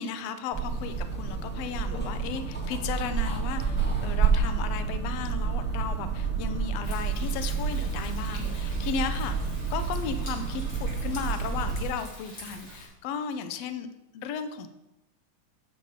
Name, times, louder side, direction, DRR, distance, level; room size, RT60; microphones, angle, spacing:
voice 1, 0.0-13.9 14.1-14.7, left 6 dB, 75° left, 9 dB, 1.5 m, -35 dB
sound 1, 0.5-11.8, right 5 dB, 10° left, 0.6 m, -29 dB
Thunder, 6.8-12.9, left 1 dB, 45° left, 4.0 m, -46 dB
8.3 x 7.8 x 5.0 m, 0.94 s
omnidirectional pair, 3.7 m